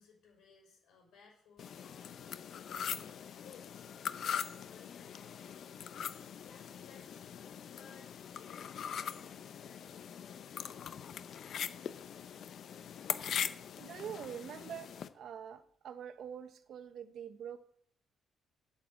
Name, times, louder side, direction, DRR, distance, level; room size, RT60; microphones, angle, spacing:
voice 1, 0.0-6.0 6.4-11.3, left 6 dB, 85° left, 0 dB, 5.4 m, -61 dB
sound 1, 1.6-15.1, left 8 dB, 65° left, 0.7 m, -42 dB
voice 2, 13.8-17.6, right 8 dB, 65° right, 11 dB, 1.0 m, -45 dB
8.6 x 7.4 x 7.6 m, 0.69 s
cardioid pair, 90°, 0 cm